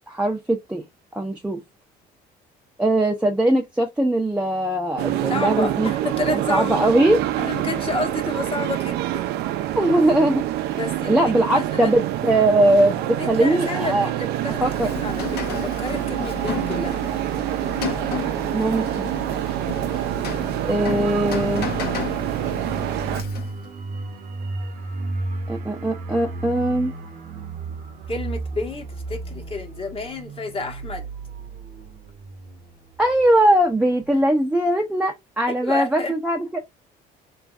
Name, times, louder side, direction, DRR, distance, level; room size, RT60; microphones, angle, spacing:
voice 1, 0.1-0.8 1.1-1.6 2.8-5.9 6.5-7.2 9.8-10.4 10.7-10.8 11.1-14.1 14.6-14.9 18.5-19.1 20.6-21.7 25.5-26.9 33.0-36.6, right 1 dB, 5° right, 0.6 m, -20 dB
sound 1, 5.0-23.2, right 13 dB, 75° right, 0.4 m, -26 dB
voice 2, 5.3-6.9 7.4-9.2 10.8-12.0 13.2-17.1 28.1-31.1 35.5-36.1, left 3 dB, 35° left, 1.2 m, -30 dB
Rain, 14.4-23.7, left 3 dB, 70° left, 0.9 m, -32 dB
sound 2, 21.2-33.6 33.9-34.1, right 3 dB, 55° right, 0.8 m, -34 dB
3.1 x 2.6 x 2.4 m
cardioid pair, 110°, 17 cm